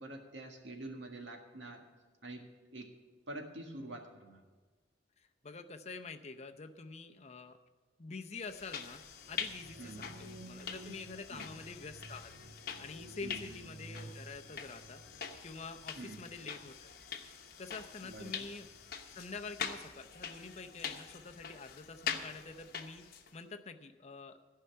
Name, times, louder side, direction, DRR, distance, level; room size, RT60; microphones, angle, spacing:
voice 1, 0.0-1.8 2.2-2.4 2.7-2.9 3.3-4.4 9.8-10.1 11.3-11.5 13.2-13.4 16.0-16.2 18.0-18.4, right 2 dB, 80° right, 2 dB, 1.7 m, -46 dB
voice 2, 5.2-7.6 8.0-12.3 12.8-15.0 15.4-16.9 17.6-18.7 19.1-24.4, left 4 dB, 35° left, 7 dB, 0.6 m, -47 dB
sound 1, 8.4-23.4, left 7 dB, 55° left, 1.0 m, -44 dB
sound 2, 9.2-15.7, right 1 dB, 45° right, 1.8 m, -52 dB
13.5 x 5.6 x 9.5 m, 1.3 s
head